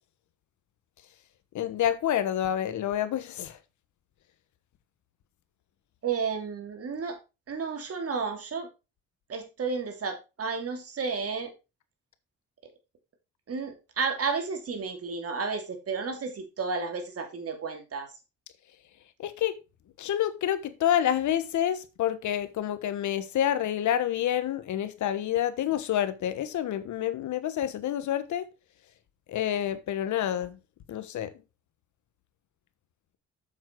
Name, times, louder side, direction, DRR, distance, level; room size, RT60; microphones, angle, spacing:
voice 1, 1.5-3.6 19.2-19.6 20.0-28.4 29.3-30.6 30.9-31.3, left 11 dB, 70° left, 1.2 m, -28 dB
voice 2, 6.0-7.2 7.5-8.7 9.3-11.5 13.5-18.1, right 5 dB, 50° right, 3.0 m, -32 dB
7.7 x 7.4 x 4.5 m
cardioid pair, 90°, 30 cm